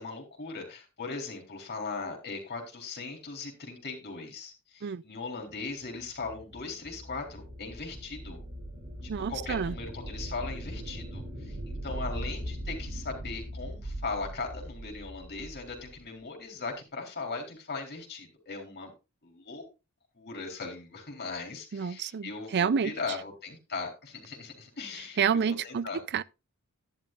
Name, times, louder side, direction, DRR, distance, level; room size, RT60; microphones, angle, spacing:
voice 1, 0.0-8.4 9.0-18.9 19.2-19.7 20.1-26.0, left 4 dB, 50° left, 4.0 m, -39 dB
sound 1, 5.9-16.0, right 1 dB, 30° right, 4.0 m, -40 dB
voice 2, 9.1-9.7 21.7-22.9 25.2-25.9 26.1-26.2, right 6 dB, 50° right, 0.4 m, -28 dB
12.0 x 11.0 x 2.4 m
head